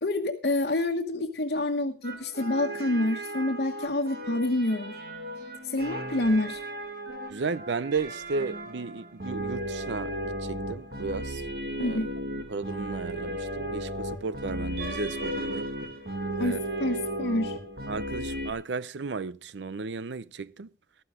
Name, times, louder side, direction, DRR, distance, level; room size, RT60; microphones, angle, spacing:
voice 1, 0.0-4.9 5.7-6.6 11.8-12.1 16.4-17.6, left 1 dB, 60° left, 1.2 m, -27 dB
sound 1, 2.0-18.5, right 1 dB, 60° right, 2.3 m, -35 dB
voice 2, 7.3-11.4 11.8-12.0 12.5-15.7 16.4-16.6 17.9-20.7, right 4 dB, 90° right, 0.6 m, -34 dB
15.0 x 12.5 x 3.6 m
head